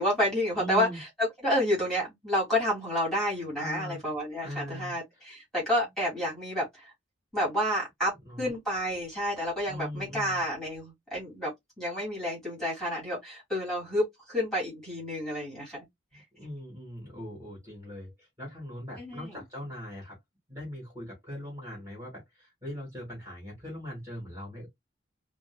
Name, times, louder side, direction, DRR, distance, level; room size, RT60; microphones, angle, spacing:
voice 1, 0.0-6.9 7.3-8.1 8.4-11.5 11.8-14.0 14.3-15.8 19.0-19.4, equal, ahead, 3.1 m, -29 dB
voice 2, 0.5-1.0 3.6-4.0 4.4-4.9 8.2-8.5 9.7-10.4 16.1-20.2 20.5-24.7, equal, 15° right, 3.0 m, -40 dB
5.1 x 2.6 x 2.4 m
head